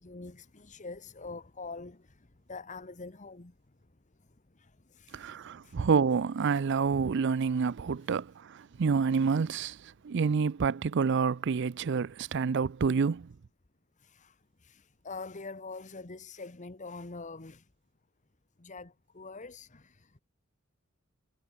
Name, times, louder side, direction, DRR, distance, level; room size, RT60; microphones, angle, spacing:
voice 1, 0.0-2.0 2.5-3.5 4.6-5.3 5.6-5.8 8.1-8.2 14.0-14.3 14.6-17.6 18.6-20.2, left 3 dB, 35° left, 1.2 m, -44 dB
voice 2, 5.1-9.8 10.0-13.3, right 5 dB, 55° right, 0.4 m, -28 dB
head